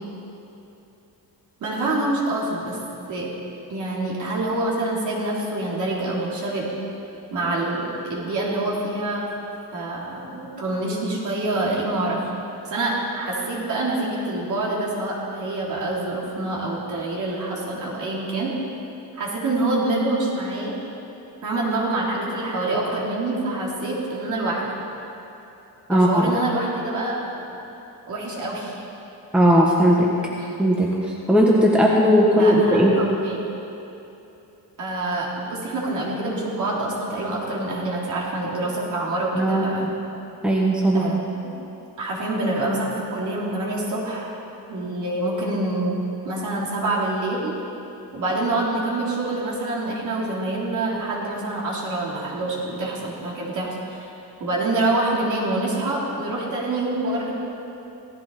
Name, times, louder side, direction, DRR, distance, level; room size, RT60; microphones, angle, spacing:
voice 1, 1.6-2.8 3.1-3.3 3.7-6.7 7.3-9.2 9.7-12.2 12.7-18.5 19.2-20.7 21.4-24.6 25.9-27.1 28.1-28.8 30.4-30.5 32.4-33.4 34.8-39.9 40.9-41.2 41.4-41.5 42.0-44.3 44.7-45.9 46.2-47.5 48.1-54.1 54.4-57.3, right 2 dB, 50° right, -4 dB, 3.6 m, -26 dB
voice 2, 25.9-26.2 29.3-30.2 30.6-31.0 31.3-33.0 39.3-39.6 40.4-41.1, equal, 5° right, -3 dB, 1.2 m, -17 dB
17.0 x 14.5 x 4.2 m, 2.9 s
cardioid pair, 150°, 38 cm